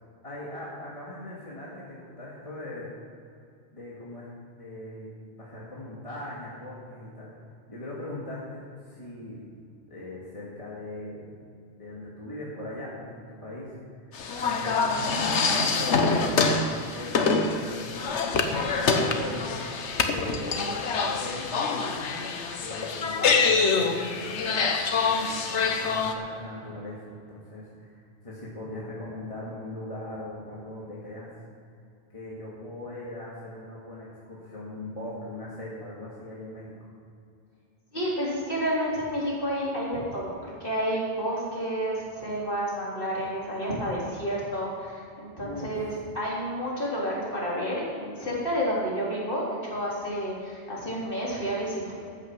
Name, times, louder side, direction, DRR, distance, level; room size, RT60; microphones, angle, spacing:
voice 1, 0.2-2.9 3.7-4.3 4.6-5.1 5.4-7.3 7.7-9.4 9.9-11.4 11.8-13.7 14.0-16.4 16.7-17.1 17.4-17.9 18.1-19.4 20.0-21.8 22.6-24.6 25.0-31.3 32.1-36.9 45.4-45.7, left 1 dB, 30° left, -7 dB, 2.3 m, -40 dB
sound 1, 14.1-26.1, left 4 dB, 85° left, 1.3 m, -25 dB
voice 2, 37.9-40.3 40.6-51.9, equal, 50° left, -6 dB, 3.9 m, -30 dB
14.0 x 9.1 x 6.0 m, 2.4 s
omnidirectional pair, 1.1 m